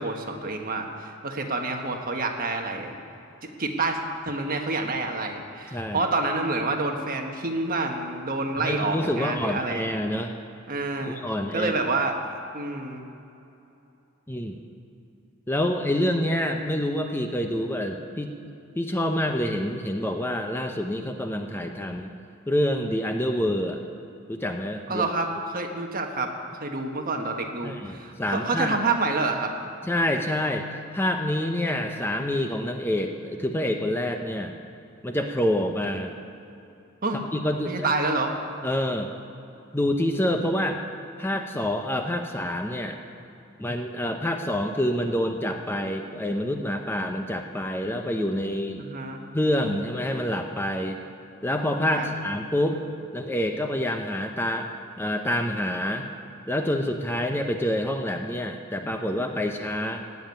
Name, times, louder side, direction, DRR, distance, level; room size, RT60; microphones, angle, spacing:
voice 1, 0.0-2.9 3.6-4.0 4.2-9.8 10.7-11.2 11.5-12.2 12.5-13.0 24.9-26.3 26.6-29.5 37.0-37.2 37.6-38.3 48.8-49.2 51.9-52.1, right 3 dB, 40° right, 3 dB, 1.4 m, -28 dB
voice 2, 5.7-6.1 8.6-10.3 11.0-11.7 14.3-14.6 15.5-18.3 18.7-22.1 22.5-23.8 24.3-25.1 27.6-28.8 29.8-34.5 35.0-36.1 37.3-37.9 38.6-39.1 39.7-40.8 41.2-43.0 43.6-48.8 49.3-51.0 51.4-52.8 53.1-54.7 55.0-56.1 56.5-60.0, left 1 dB, 10° left, 4 dB, 0.7 m, -27 dB
16.5 x 7.3 x 9.5 m, 2.8 s
head